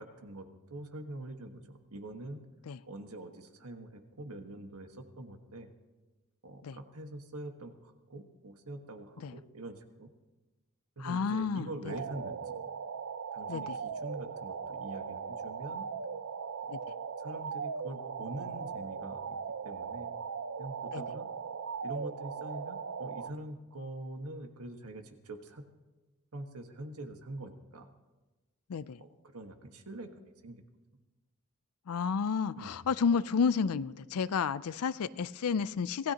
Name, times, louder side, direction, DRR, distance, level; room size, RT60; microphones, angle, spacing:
voice 1, 0.0-2.4 2.9-5.7 6.4-10.1 11.0-12.6 13.3-15.9 17.2-19.4 19.6-20.1 20.6-21.3 21.8-25.6 26.3-27.9 29.0-30.6 32.6-32.8, right 1 dB, 80° right, 5 dB, 1.5 m, -44 dB
voice 2, 11.0-11.9 13.5-13.8 16.7-16.8 20.9-21.0 28.7-29.0 31.9-36.1, left 6 dB, 85° left, 16 dB, 0.4 m, -31 dB
sound 1, 11.9-23.3, right 6 dB, 60° right, 0.5 m, -39 dB
26.0 x 15.5 x 2.9 m, 1.2 s
head